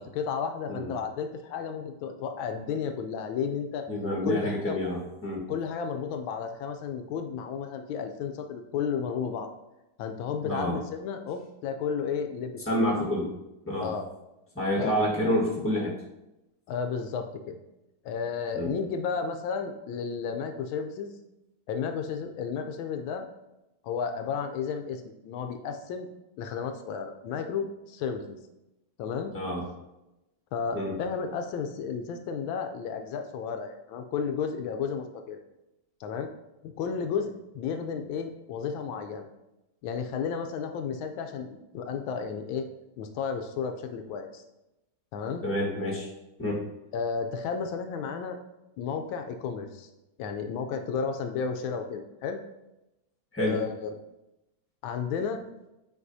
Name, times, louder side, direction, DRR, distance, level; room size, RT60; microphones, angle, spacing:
voice 1, 0.0-3.9 4.2-4.8 5.5-9.5 10.0-13.0 13.8-14.1 14.8-14.9 16.7-17.6 18.0-21.1 21.7-23.3 23.8-26.1 26.4-28.4 29.0-29.3 30.5-35.4 36.0-36.3 36.6-39.3 39.8-42.7 43.0-44.4 45.1-45.4 46.9-48.4 48.8-49.9 50.2-52.4 53.4-53.9 54.8-55.4, left 6 dB, 75° left, 6 dB, 1.3 m, -33 dB
voice 2, 3.9-5.5 10.4-10.8 12.7-13.3 13.7-13.9 14.5-15.9 18.5-18.7 29.3-29.6 30.7-30.9 45.4-46.1 46.4-46.7 53.3-53.6, equal, 10° left, -4 dB, 1.0 m, -28 dB
8.4 x 4.8 x 2.6 m, 0.95 s
omnidirectional pair, 2.4 m